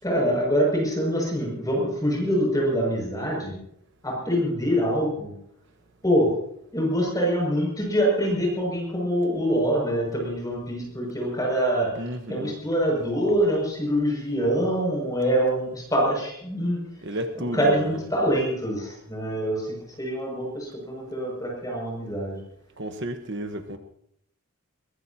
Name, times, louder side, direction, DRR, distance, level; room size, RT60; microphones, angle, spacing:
voice 1, 0.0-3.5 4.0-5.3 6.0-6.3 6.7-16.8 17.3-22.4, equal, 15° left, -2 dB, 6.5 m, -25 dB
voice 2, 11.9-12.6 17.0-18.1 22.8-23.8, right 1 dB, 55° right, 6 dB, 1.2 m, -32 dB
22.5 x 21.0 x 2.9 m, 0.72 s
head